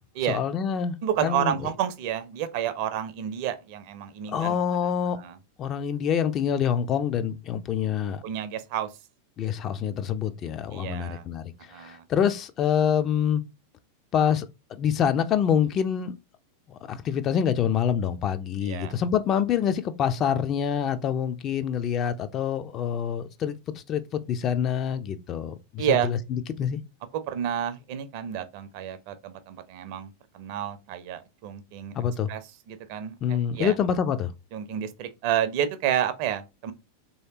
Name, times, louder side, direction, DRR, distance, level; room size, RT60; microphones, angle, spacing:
voice 1, 0.3-0.9 1.2-1.6 4.3-5.2 5.6-8.2 9.4-13.4 14.1-16.1 16.7-26.8 32.0-32.3 33.2-34.3, left 8 dB, 30° left, 0.3 m, -26 dB
voice 2, 1.0-5.4 8.2-8.9 10.7-11.2 11.7-12.0 18.6-18.9 25.8-26.1 27.1-32.0 32.3-32.4 32.7-33.7 34.5-36.7, right 10 dB, 45° right, 0.5 m, -30 dB
3.1 x 2.7 x 2.7 m
figure-of-eight pair, 90°, 0 cm